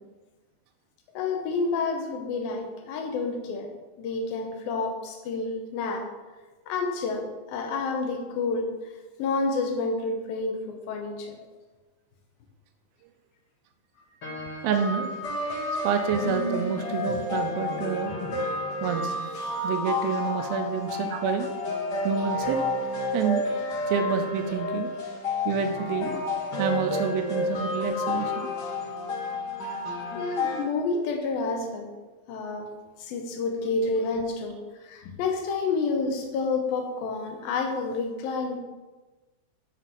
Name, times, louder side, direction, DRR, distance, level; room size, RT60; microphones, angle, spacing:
voice 1, 1.1-6.1 6.7-8.9 9.2-11.4 16.1-17.2 18.1-18.3 30.2-31.9 32.3-32.7 33.0-38.6, left 3 dB, 80° left, 3 dB, 2.9 m, -29 dB
sound 1, 14.2-30.6, left 2 dB, 50° left, 1.2 m, -30 dB
voice 2, 14.6-15.1 15.8-18.1 18.8-19.2 19.6-21.5 22.0-22.6 23.1-23.4 23.9-24.9 25.5-26.2 26.6-28.5, right 7 dB, 85° right, 6 dB, 2.6 m, -28 dB
12.0 x 6.4 x 4.3 m, 1.2 s
omnidirectional pair, 4.2 m